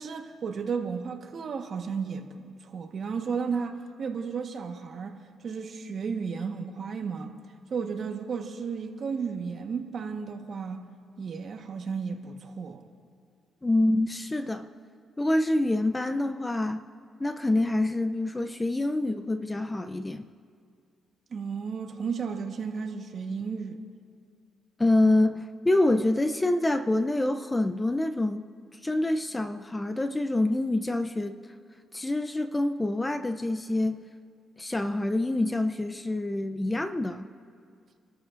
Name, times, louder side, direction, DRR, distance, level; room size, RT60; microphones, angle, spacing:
voice 1, 0.0-7.3 7.7-10.9 11.2-12.8 21.3-23.8, right 5 dB, 55° right, 1.3 m, -33 dB
voice 2, 13.6-14.7 15.2-16.8 17.2-20.3 24.8-28.5 28.8-31.4 31.9-34.0 34.6-37.3, left 2 dB, 15° left, 0.6 m, -26 dB
29.5 x 13.0 x 2.6 m
cardioid pair, 90°, 0 cm